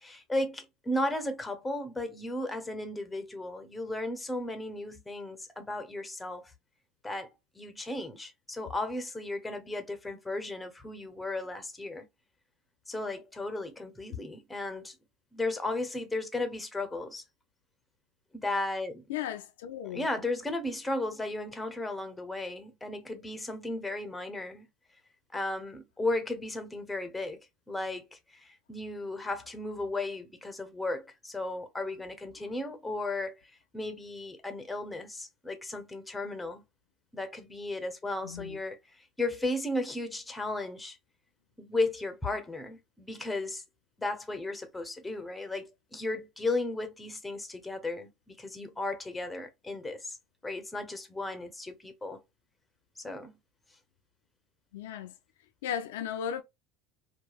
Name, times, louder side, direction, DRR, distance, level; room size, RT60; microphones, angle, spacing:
voice 1, 0.0-6.5 7.0-7.3 7.6-12.1 12.9-14.9 15.3-17.2 18.3-19.0 19.9-24.7 25.3-27.4 27.7-33.3 33.7-36.6 37.1-41.0 41.6-43.6 44.0-50.2 50.4-52.2 53.0-53.4, left 2 dB, 10° left, 0.7 m, -35 dB
voice 2, 19.1-20.1 38.2-38.6 54.7-55.1 55.6-56.4, left 9 dB, 75° left, 0.3 m, -35 dB
2.7 x 2.2 x 2.3 m
hypercardioid pair, 85°, 0 cm